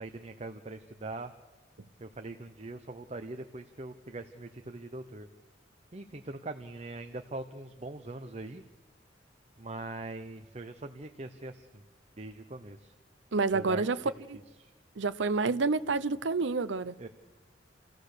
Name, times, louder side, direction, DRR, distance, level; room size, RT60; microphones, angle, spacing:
voice 1, 0.0-1.3 2.0-5.3 5.9-8.6 9.6-11.8 12.2-12.9 13.5-13.9 14.6-14.7 17.0-17.1, right 2 dB, 35° right, 0.8 m, -42 dB
voice 2, 13.3-14.0 14.3-14.4 15.0-17.0, right 4 dB, 75° right, 0.7 m, -28 dB
28.0 x 15.5 x 6.6 m
head